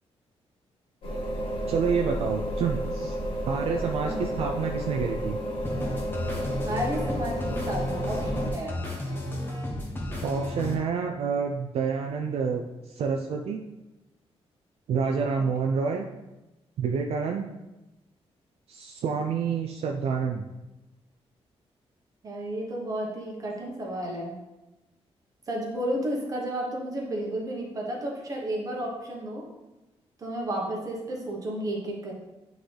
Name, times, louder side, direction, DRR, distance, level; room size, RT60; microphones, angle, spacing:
sound 1, 1.0-8.5, equal, 55° left, 1.2 m, -31 dB
voice 1, 1.7-3.2 3.5-5.4 10.2-13.6 14.9-16.1 16.8-17.5 18.7-20.5, right 5 dB, 65° right, 3 dB, 0.4 m, -28 dB
sound 2, 5.6-10.7, left 1 dB, 20° left, 1.0 m, -33 dB
voice 2, 6.6-8.8 22.2-24.3 25.5-29.4 30.2-32.1, right 1 dB, 30° right, -1 dB, 1.2 m, -32 dB
8.2 x 3.9 x 3.3 m, 1.0 s
wide cardioid pair, 175°, 11 cm